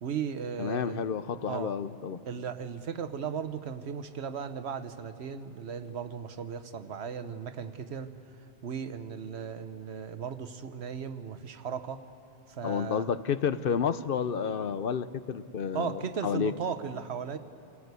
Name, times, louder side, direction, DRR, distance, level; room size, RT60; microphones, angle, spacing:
voice 1, 0.0-1.0 1.5-1.7 2.2-12.1 12.5-13.1 15.7-17.4, right 7 dB, 90° right, 10 dB, 1.2 m, -36 dB
voice 2, 0.6-2.2 12.6-16.5, left 7 dB, 65° left, 12 dB, 0.9 m, -30 dB
27.5 x 17.5 x 8.2 m, 2.9 s
omnidirectional pair, 1.1 m